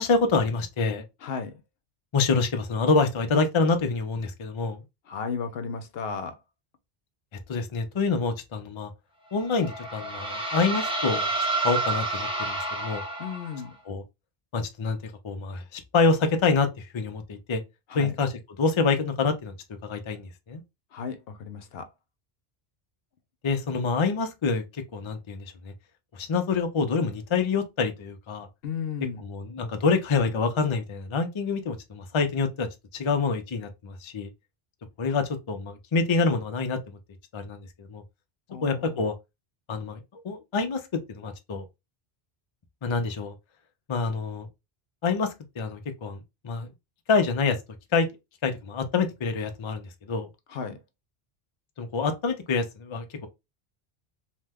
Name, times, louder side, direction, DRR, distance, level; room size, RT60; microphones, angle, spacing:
voice 1, 0.0-1.0 2.1-4.8 7.5-8.9 9.3-11.3 11.6-13.0 13.9-14.0 14.5-17.6 17.9-19.5 19.8-20.6 23.4-24.6 24.9-25.7 26.1-28.5 29.2-32.7 32.9-34.3 35.0-36.8 37.3-38.0 38.6-39.1 39.7-41.6 42.8-43.3 43.9-44.5 45.0-46.7 47.1-47.6 47.9-48.1 48.4-50.3 51.8-53.3, left 4 dB, 40° left, 0.4 m, -26 dB
voice 2, 1.2-1.5 5.1-6.4 13.2-13.7 17.9-18.1 20.9-21.9 28.6-29.2 38.5-39.0 50.5-50.8, left 5 dB, 75° left, 0.8 m, -34 dB
sound 1, 9.4-13.7, right 2 dB, 5° right, 0.5 m, -29 dB
2.8 x 2.2 x 3.3 m
omnidirectional pair, 1.1 m